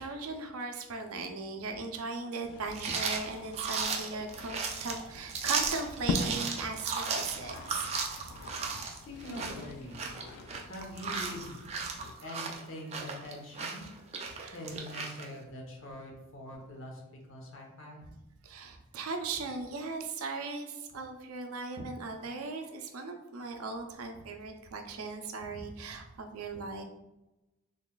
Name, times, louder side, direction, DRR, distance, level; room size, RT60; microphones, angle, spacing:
voice 1, 0.0-7.9 14.4-14.6 18.0-18.1 18.4-26.8, right 3 dB, 80° right, 5 dB, 0.5 m, -38 dB
sound 1, 2.4-12.1, left 4 dB, 85° left, 0.3 m, -42 dB
sound 2, 2.7-15.3, right 5 dB, 30° right, 0.3 m, -36 dB
voice 2, 8.8-10.1 10.6-11.6 12.2-13.9 14.5-17.0 17.3-18.0, left 1 dB, 65° left, 0 dB, 0.9 m, -44 dB
3.8 x 3.4 x 2.3 m, 0.98 s
head